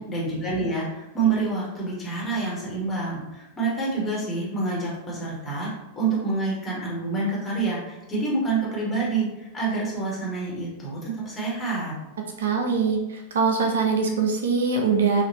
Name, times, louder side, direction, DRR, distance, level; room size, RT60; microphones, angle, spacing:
voice 1, 0.0-5.7 5.9-11.9, right 3 dB, 20° left, -6 dB, 1.5 m, -27 dB
voice 2, 12.4-15.2, right 5 dB, 65° right, 2 dB, 0.5 m, -23 dB
4.0 x 2.6 x 3.0 m, 0.96 s
figure-of-eight pair, 90°, 0 cm